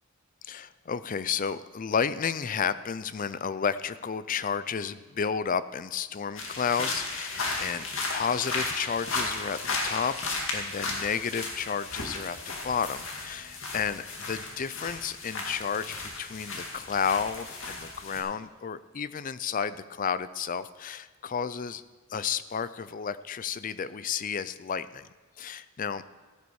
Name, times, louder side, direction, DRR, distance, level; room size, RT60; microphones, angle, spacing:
voice 1, 0.4-10.2 10.5-21.8 22.1-25.1 25.4-26.0, left 6 dB, 40° left, 15 dB, 0.4 m, -32 dB
sound 1, 6.4-18.2, left 3 dB, 65° left, 2.3 m, -35 dB
16.0 x 9.9 x 4.8 m, 1.3 s
head